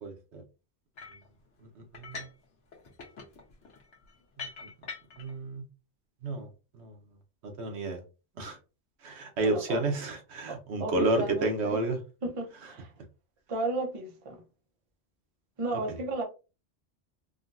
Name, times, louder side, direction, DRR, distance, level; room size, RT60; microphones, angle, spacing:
voice 1, 0.0-0.4 1.6-2.3 4.4-4.7 5.2-5.6 6.2-7.0 7.4-8.0 8.4-8.6 9.0-12.0 15.9-16.0, right 2 dB, 70° right, 1.0 m, -31 dB
sound 1, 1.0-1.3 1.9-2.4 2.7-5.3, left 4 dB, 75° left, 1.2 m, -44 dB
voice 2, 9.4-9.9 10.5-11.8 12.2-12.9 13.5-14.4 15.6-16.2, right 2 dB, 35° right, 0.6 m, -34 dB
3.7 x 2.2 x 2.5 m
omnidirectional pair, 1.2 m